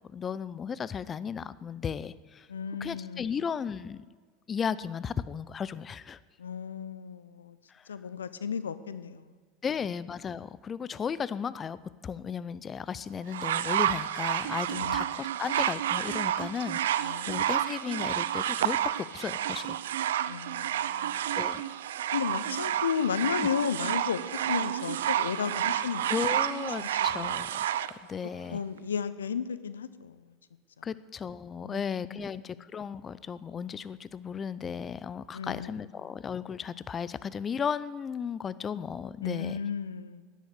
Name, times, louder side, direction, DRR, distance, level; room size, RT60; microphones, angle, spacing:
voice 1, 0.0-2.5 2.8-4.1 4.5-6.2 7.7-7.9 9.6-11.8 12.0-19.8 21.3-21.7 23.4-23.5 26.0-28.6 30.8-39.6, left 7 dB, 30° left, 17 dB, 0.5 m, -35 dB
voice 2, 2.5-3.3 6.4-7.6 7.9-9.3 14.7-15.0 17.0-17.4 20.3-21.3 22.1-26.0 26.8-27.4 28.5-30.2 31.6-31.8 32.1-32.3 35.3-35.7 39.2-40.2, left 7 dB, 90° left, 14 dB, 0.6 m, -34 dB
sound 1, 13.3-27.9 28.8-28.9, right 11 dB, 80° right, 0.5 m, -30 dB
10.5 x 9.4 x 8.2 m, 1.5 s
hypercardioid pair, 85°, 0 cm